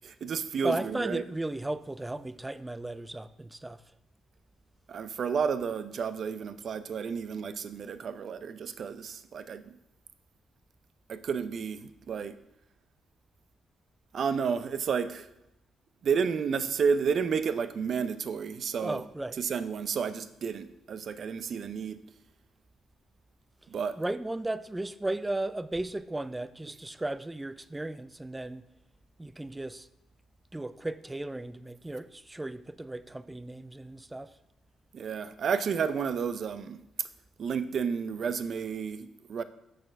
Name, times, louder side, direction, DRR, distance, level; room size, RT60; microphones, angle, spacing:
voice 1, 0.0-1.2 4.9-9.7 11.1-12.3 14.1-15.3 16.0-19.0 19.4-22.0 23.7-24.0 34.9-37.1 37.4-39.4, right 6 dB, 55° right, 0.6 m, -31 dB
voice 2, 0.6-3.8 18.8-19.4 24.0-28.6 29.2-29.9 30.5-34.3, right 2 dB, 15° right, 0.4 m, -35 dB
6.8 x 6.4 x 5.8 m
cardioid pair, 90°, 0 cm